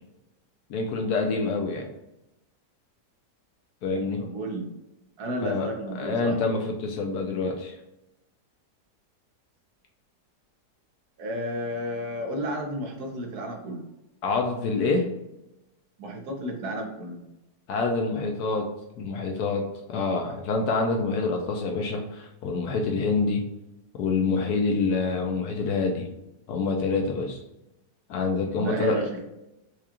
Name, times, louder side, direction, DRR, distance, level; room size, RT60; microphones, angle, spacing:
voice 1, 0.7-1.8 3.8-4.2 5.4-5.7 5.9-7.7 14.2-15.0 17.7-18.7 19.0-23.4 23.9-26.1 26.5-27.4 28.1-29.1, left 3 dB, 70° left, 2 dB, 1.0 m, -26 dB
voice 2, 4.2-4.6 5.2-6.4 11.2-13.8 16.0-17.2 28.6-29.2, equal, 65° right, 1 dB, 1.4 m, -32 dB
4.7 x 2.4 x 2.9 m, 0.91 s
omnidirectional pair, 1.9 m